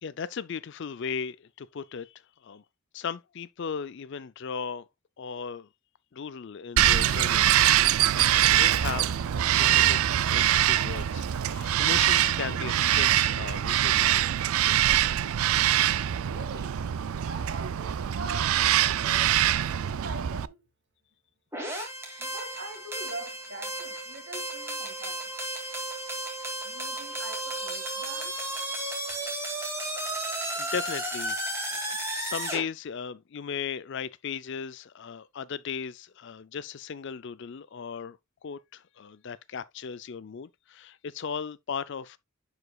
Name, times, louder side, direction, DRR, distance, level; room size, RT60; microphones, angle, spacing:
voice 1, 0.0-2.6 2.9-4.8 5.2-5.7 6.1-7.7 8.2-10.0 10.3-14.2 25.8-25.9 29.9-30.1 30.5-31.8 32.1-38.2 38.4-42.2, left 6 dB, 55° left, 0.4 m, -37 dB
Bird vocalization bird call bird song, 6.8-20.5, right 11 dB, 70° right, 0.4 m, -24 dB
voice 2, 16.2-16.8 17.3-19.3 19.6-20.7 22.2-25.2 26.6-28.4, right 2 dB, 50° right, 2.1 m, -43 dB
sound 1, 21.5-32.6, right 1 dB, 10° right, 2.1 m, -34 dB
10.5 x 5.0 x 2.3 m
head